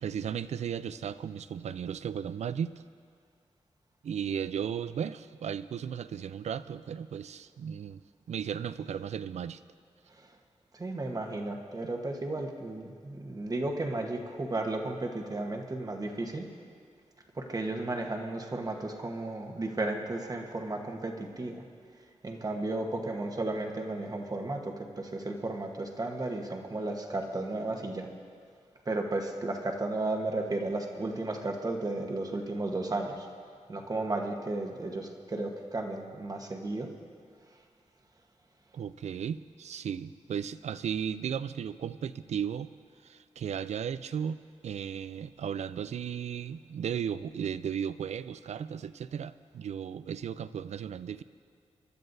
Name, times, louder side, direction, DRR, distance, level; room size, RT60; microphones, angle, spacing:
voice 1, 0.0-2.8 4.0-8.0 8.3-9.6 38.7-42.7 43.0-51.2, right 8 dB, 70° right, 15 dB, 0.4 m, -35 dB
voice 2, 10.7-16.5 17.3-21.6 22.2-28.1 28.8-33.3 33.7-36.9, right 2 dB, 30° right, 3 dB, 1.2 m, -34 dB
25.0 x 12.0 x 2.7 m, 2.1 s
wide cardioid pair, 115°, 12 cm